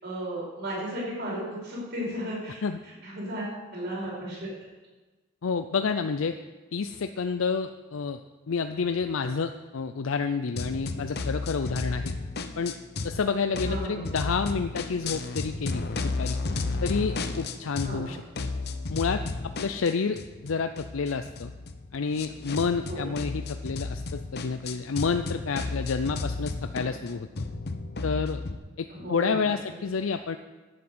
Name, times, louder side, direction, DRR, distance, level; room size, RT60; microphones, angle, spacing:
voice 1, 0.0-2.6 2.8-4.5 13.6-14.1 17.8-18.1 22.9-23.1 28.9-29.8, equal, 55° right, -4 dB, 5.0 m, -35 dB
voice 2, 5.4-6.4 6.7-8.2 8.5-12.2 12.6-12.7 13.0-16.4 16.8-18.5 18.9-19.2 19.6-21.5 21.9-27.3 28.0-28.4 28.8-30.4, left 5 dB, 80° left, 8 dB, 0.5 m, -29 dB
sound 1, 10.6-13.2 13.5-18.1 18.3-28.6, left 3 dB, 50° left, 0.8 m, -33 dB
10.5 x 8.6 x 7.9 m, 1.2 s
head